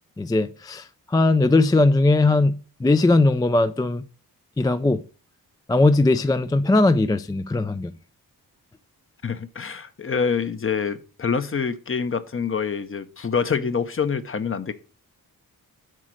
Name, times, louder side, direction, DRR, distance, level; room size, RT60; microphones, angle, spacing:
voice 1, 0.2-4.0 4.6-5.0 5.7-7.9, left 2 dB, 10° left, 0.3 m, -19 dB
voice 2, 9.2-14.7, left 6 dB, 35° left, 0.7 m, -26 dB
7.6 x 5.0 x 6.2 m
wide cardioid pair, 125°, 37 cm